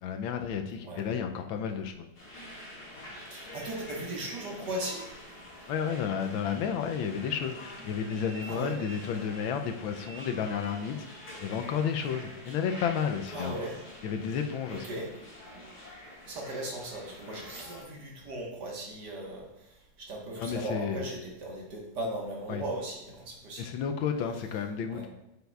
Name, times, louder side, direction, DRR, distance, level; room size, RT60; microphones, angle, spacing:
voice 1, 0.0-2.1 5.7-11.1 11.4-13.6 14.0-14.8 20.4-21.0 22.5-22.6 23.6-25.1, left 7 dB, 80° left, 6 dB, 1.4 m, -32 dB
sound 1, 2.1-17.8, left 1 dB, 50° left, 2.4 m, -46 dB
voice 2, 3.3-5.4 8.5-8.8 13.3-13.8 14.7-15.1 16.3-23.7 24.9-25.1, right 1 dB, 55° right, -2 dB, 1.9 m, -38 dB
7.8 x 6.9 x 2.3 m, 0.92 s
omnidirectional pair, 2.2 m